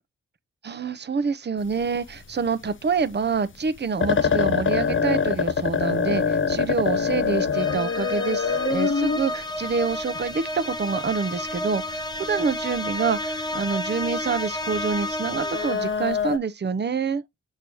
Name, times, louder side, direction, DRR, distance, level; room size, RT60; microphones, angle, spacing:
voice 1, 0.6-17.2, right 5 dB, 35° right, 0.7 m, -27 dB
sound 1, 1.6-2.7 3.2-3.4 3.7-3.8 4.0-10.3 11.5-11.6 11.9-12.1 12.5-12.8 13.2-13.3 13.7-14.0 14.6-16.4, left 6 dB, 40° left, 0.7 m, -24 dB
sound 2, 7.5-16.0, left 1 dB, 15° left, 0.9 m, -31 dB
6.6 x 4.7 x 3.0 m
cardioid pair, 55°, 30 cm